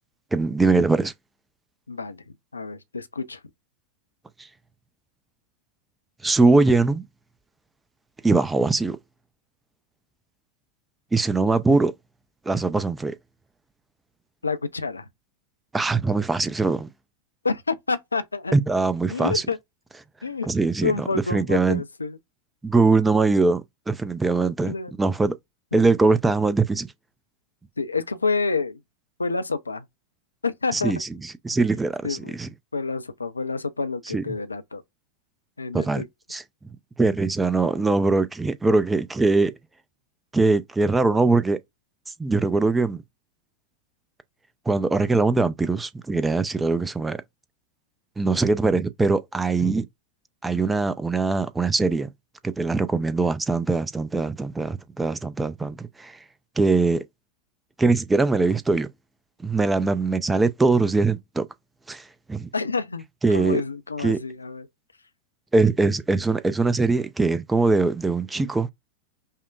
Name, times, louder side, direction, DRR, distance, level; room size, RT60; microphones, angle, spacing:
voice 1, 0.3-1.1 6.2-7.0 8.2-9.0 11.1-11.9 12.5-13.1 15.7-16.9 18.5-19.4 20.5-21.0 21.3-21.8 22.6-25.4 25.7-26.9 30.7-32.5 34.1-34.2 35.7-36.0 36.3-36.4 37.0-39.5 40.3-41.6 42.2-43.0 44.7-47.2 48.2-49.8 50.4-52.1 52.4-56.2 56.6-57.0 57.8-58.9 59.4-61.5 61.9-62.0 62.3-62.5 63.2-63.6 64.0-64.2 65.5-68.7, right 3 dB, 10° right, 0.4 m, -22 dB
voice 2, 1.9-3.4 14.4-15.1 17.4-18.6 19.1-19.6 20.2-20.5 20.8-22.2 24.7-24.9 25.7-25.8 27.8-28.8 29.2-29.8 30.4-31.0 32.0-32.3 32.7-34.8 35.6-36.1 62.5-63.0 63.3-64.7, left 4 dB, 80° left, 0.4 m, -28 dB
5.5 x 2.1 x 2.3 m
figure-of-eight pair, 90°, 0 cm